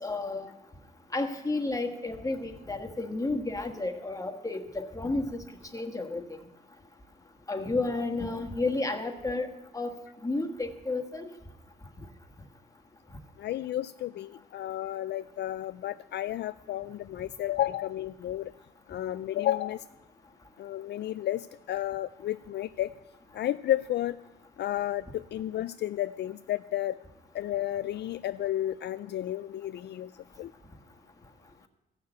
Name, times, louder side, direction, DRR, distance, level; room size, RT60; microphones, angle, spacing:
voice 1, 0.0-0.5 1.1-5.4 5.7-6.2 7.5-9.5 9.7-9.9 10.2-11.3, left 2 dB, 15° left, 5 dB, 1.6 m, -31 dB
voice 2, 13.4-18.5 18.9-19.8 20.6-22.9 23.3-24.2 24.6-27.0 27.3-30.1 30.4-30.5, left 13 dB, 60° left, 13 dB, 0.4 m, -32 dB
15.5 x 6.6 x 8.1 m, 1.0 s
cardioid pair, 90°, 20 cm